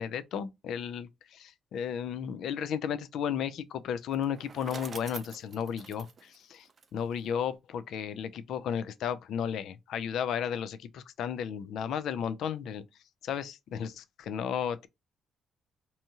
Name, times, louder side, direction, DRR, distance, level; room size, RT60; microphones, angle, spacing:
voice 1, 0.0-6.7 6.9-12.8 13.2-14.9, left 8 dB, 75° left, 0.3 m, -34 dB
Bicycle, 4.1-7.3, right 5 dB, 45° right, 0.5 m, -47 dB
2.7 x 2.3 x 2.7 m
cardioid pair, 90°, 0 cm